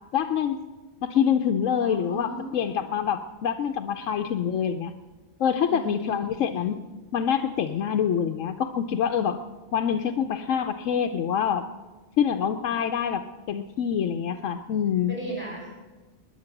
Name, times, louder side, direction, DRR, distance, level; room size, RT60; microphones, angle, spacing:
voice 1, 0.1-0.6 1.0-4.9 5.4-6.8 7.1-9.4 9.7-11.7 12.2-13.2 13.5-15.1, left 8 dB, 85° left, 6 dB, 1.1 m, -25 dB
voice 2, 1.8-2.8 5.7-6.7 15.1-15.7, right 1 dB, 10° right, -4 dB, 5.4 m, -36 dB
20.5 x 10.5 x 6.0 m, 1.3 s
omnidirectional pair, 1.3 m